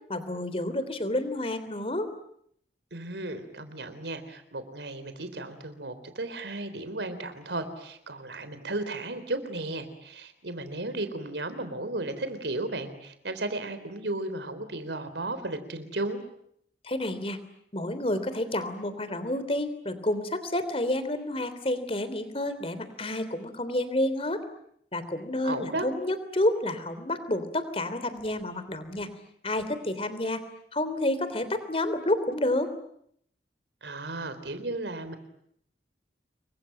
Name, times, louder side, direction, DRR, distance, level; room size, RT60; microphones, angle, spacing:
voice 1, 0.1-2.1 16.8-17.4 17.7-24.4 24.9-29.1 29.4-30.4 30.7-32.7, left 1 dB, 35° left, 12 dB, 3.3 m, -29 dB
voice 2, 2.9-16.2 25.4-25.9 33.8-35.2, right 2 dB, 85° right, 11 dB, 3.8 m, -34 dB
28.0 x 23.0 x 9.0 m, 0.70 s
head